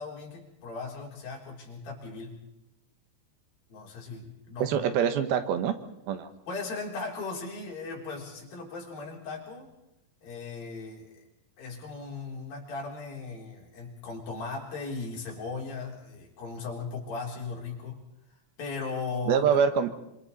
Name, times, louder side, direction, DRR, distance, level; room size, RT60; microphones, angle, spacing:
voice 1, 0.0-2.3 3.7-4.7 6.5-9.7 10.2-11.2 11.6-18.0 18.6-19.4, left 4 dB, 70° left, -1 dB, 5.3 m, -37 dB
voice 2, 4.6-5.7 6.1-6.3 19.3-20.0, right 7 dB, 80° right, 9 dB, 3.0 m, -25 dB
26.0 x 25.5 x 4.1 m, 0.89 s
omnidirectional pair, 4.4 m